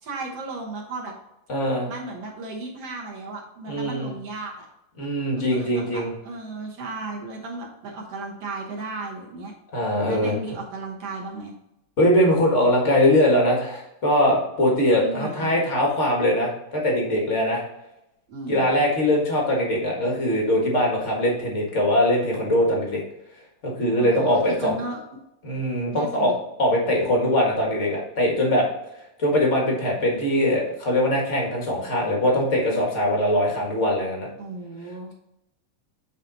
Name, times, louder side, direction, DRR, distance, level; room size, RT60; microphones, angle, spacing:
voice 1, 0.0-1.1 1.9-4.7 5.3-9.5 10.0-11.5 15.0-15.5 18.3-18.7 24.0-25.0 25.9-26.4 34.4-35.1, right 3 dB, 60° right, -1 dB, 1.8 m, -35 dB
voice 2, 1.5-1.9 3.7-4.1 5.0-6.1 9.7-10.4 12.0-17.6 18.5-23.0 23.8-24.8 25.4-26.3 26.6-28.7 29.2-34.3, left 1 dB, 60° left, -1 dB, 0.7 m, -21 dB
9.3 x 4.1 x 3.9 m, 0.86 s
omnidirectional pair, 4.0 m